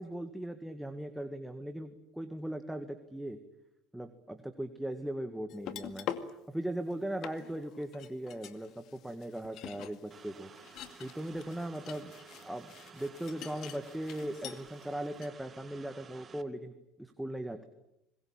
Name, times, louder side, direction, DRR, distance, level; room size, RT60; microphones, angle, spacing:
voice 1, 0.0-3.4 3.9-6.1 6.5-10.5 11.0-12.1 12.4-17.7, right 1 dB, 5° right, 7 dB, 2.0 m, -39 dB
sound 1, 5.5-6.3 6.9-7.0 7.2-14.9 15.1-15.3, left 10 dB, 60° left, 2.2 m, -45 dB
sound 2, 10.1-16.4, right 6 dB, 30° right, 2.0 m, -54 dB
25.5 x 21.5 x 9.0 m, 0.85 s
supercardioid pair, 95°, 0 cm